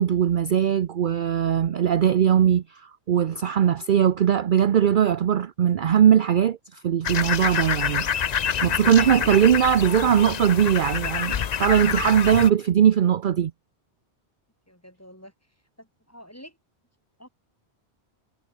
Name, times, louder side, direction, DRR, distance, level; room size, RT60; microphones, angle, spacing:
voice 1, 0.0-8.1 8.6-13.5, right 9 dB, 55° right, 0.7 m, -20 dB
sound 1, 7.0-12.5, left 8 dB, 45° left, 0.6 m, -27 dB
voice 2, 14.7-15.3 15.8-16.6 17.2-17.3, equal, 15° left, 7.3 m, -47 dB
omnidirectional pair, 1.1 m